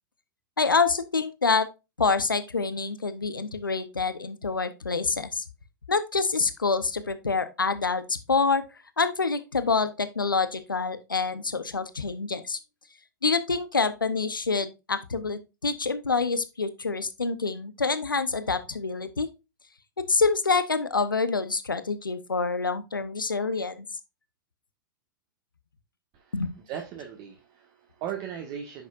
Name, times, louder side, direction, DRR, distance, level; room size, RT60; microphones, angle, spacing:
voice 1, 0.6-1.7 2.0-5.4 5.9-8.6 9.0-12.6 13.2-19.3 20.1-23.8 26.3-26.5, left 4 dB, 85° left, 0.8 m, -26 dB
voice 2, 26.7-28.9, right 9 dB, 40° right, 1.6 m, -37 dB
10.0 x 6.4 x 2.5 m
figure-of-eight pair, 100°, 11 cm